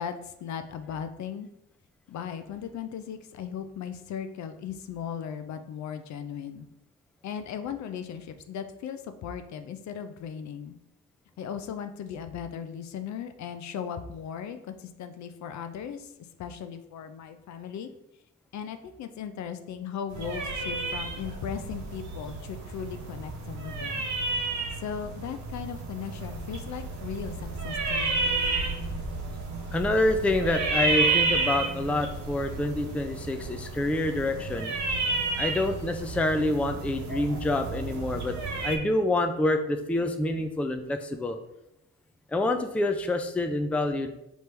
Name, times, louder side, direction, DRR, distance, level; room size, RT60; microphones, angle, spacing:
voice 1, 0.0-1.5 2.1-6.7 7.2-10.8 11.4-16.1 16.4-17.9 18.5-24.1 24.8-28.2, left 8 dB, 65° left, 9 dB, 0.5 m, -37 dB
sound 1, 20.1-38.8, right 3 dB, 70° right, 1.0 m, -31 dB
voice 2, 29.7-34.7 35.4-38.4 38.6-41.4 42.3-44.1, left 2 dB, 5° left, 6 dB, 0.3 m, -27 dB
5.2 x 3.1 x 3.3 m, 0.86 s
cardioid pair, 90°, 30 cm